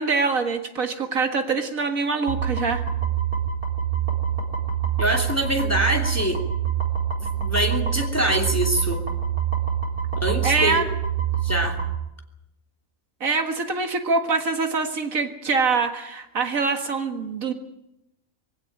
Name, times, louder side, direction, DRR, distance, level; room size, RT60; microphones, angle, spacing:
voice 1, 0.0-2.8 10.4-10.9 13.2-17.5, right 4 dB, 70° right, 6 dB, 2.2 m, -24 dB
sound 1, 2.3-11.9, right 8 dB, 85° right, 4.4 m, -26 dB
voice 2, 5.0-6.4 7.4-9.0 10.2-10.8 11.4-11.8, equal, 10° left, 2 dB, 2.8 m, -24 dB
23.0 x 16.5 x 9.2 m, 0.86 s
omnidirectional pair, 1.5 m